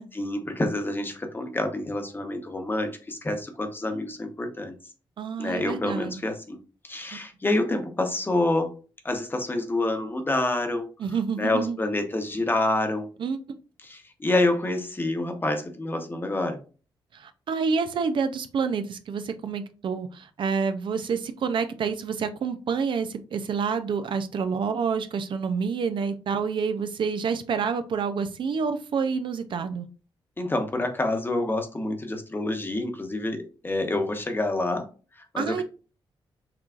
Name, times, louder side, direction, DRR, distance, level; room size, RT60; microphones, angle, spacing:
voice 1, 0.1-4.7 5.4-8.8 9.0-10.9 11.4-13.1 13.8-16.6 30.4-34.9 35.1-35.6, left 2 dB, 25° left, 1.0 m, -27 dB
voice 2, 5.2-6.1 7.1-7.2 11.0-11.8 13.2-13.4 17.1-29.9 35.4-35.6, right 5 dB, 65° right, 0.6 m, -28 dB
5.8 x 3.2 x 2.4 m
cardioid pair, 90°, 9 cm